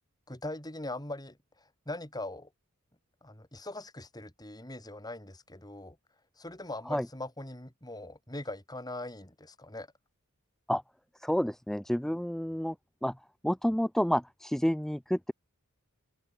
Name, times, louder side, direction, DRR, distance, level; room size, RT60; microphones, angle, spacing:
voice 1, 0.3-1.4 1.9-2.5 3.2-6.0 6.4-9.9, left 2 dB, 20° left, 5.3 m, -41 dB
voice 2, 11.2-12.8 13.0-13.2 13.4-15.3, equal, ahead, 0.3 m, -29 dB
open air
head